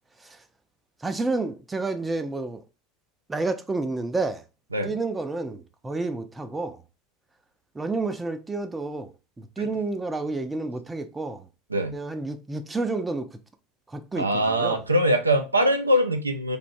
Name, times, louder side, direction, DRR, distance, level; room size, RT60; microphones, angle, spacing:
voice 1, 1.0-2.6 3.3-4.4 4.8-6.8 7.7-9.1 9.4-11.5 11.9-13.3 13.9-14.8, right 3 dB, 15° right, 0.4 m, -30 dB
voice 2, 14.2-16.6, equal, 85° right, 0.3 m, -22 dB
3.3 x 2.5 x 2.5 m
figure-of-eight pair, 75°, 0 cm